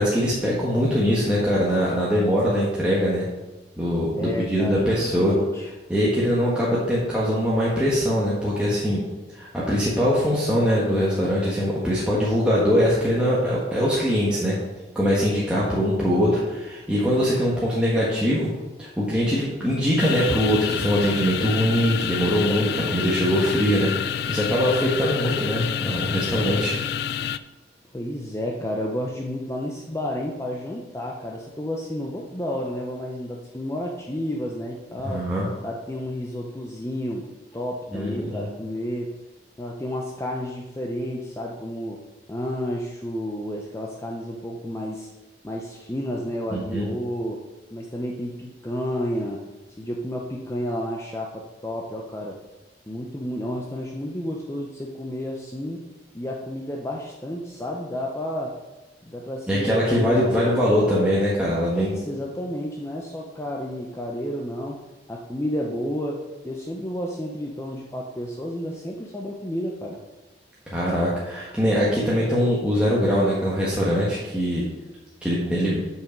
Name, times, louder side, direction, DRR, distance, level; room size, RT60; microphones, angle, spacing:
voice 1, 0.0-3.2 3.8-5.3 5.9-9.0 9.3-14.5 14.9-18.5 18.8-23.9 24.3-26.7 35.0-35.5 37.9-38.5 46.5-46.9 59.5-61.9 70.7-74.6 75.2-75.8, equal, 5° right, -8 dB, 1.4 m, -22 dB
voice 2, 4.2-5.7 27.9-35.3 35.6-39.1 39.6-42.0 42.3-45.1 45.4-47.4 47.7-49.4 49.8-52.4 52.9-55.9 56.1-58.6 59.0-60.3 61.6-70.0, equal, 15° left, -1 dB, 0.7 m, -31 dB
sound 1, 20.0-27.4, left 9 dB, 60° left, 0.3 m, -28 dB
7.7 x 5.6 x 5.1 m, 1.1 s
head